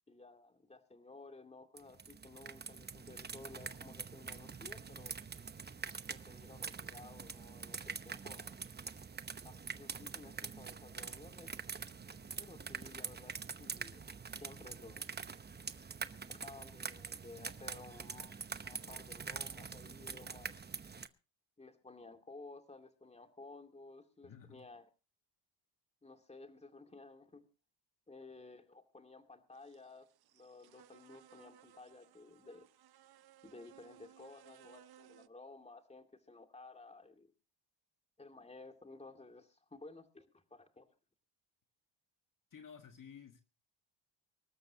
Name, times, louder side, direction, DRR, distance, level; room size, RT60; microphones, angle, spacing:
voice 1, 0.1-5.2 6.1-8.6 9.4-11.5 12.4-15.2 16.3-18.3 18.6-20.5 21.6-24.9 26.0-27.4 28.1-30.1 30.3-32.7 33.4-37.3 38.2-40.9, left 3 dB, 15° left, 2.3 m, -55 dB
sound 1, 1.8-21.1, right 5 dB, 20° right, 0.9 m, -45 dB
voice 2, 24.2-24.6 42.5-43.4, left 7 dB, 45° left, 1.7 m, -54 dB
sound 2, 29.5-35.3, right 11 dB, 55° right, 0.7 m, -62 dB
25.0 x 13.0 x 2.8 m
cardioid pair, 100°, 45 cm